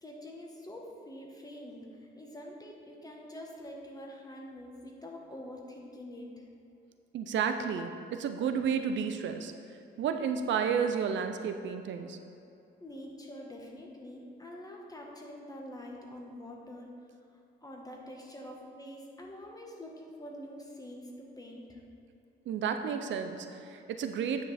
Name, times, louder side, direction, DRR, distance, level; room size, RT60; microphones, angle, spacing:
voice 1, 0.0-6.4 12.8-16.9 17.6-21.8, left 1 dB, 20° left, 0 dB, 1.4 m, -46 dB
voice 2, 7.1-9.5 10.0-12.2 22.5-24.4, right 7 dB, 70° right, 7 dB, 0.6 m, -31 dB
9.2 x 5.3 x 4.2 m, 2.6 s
cardioid pair, 90°, 20 cm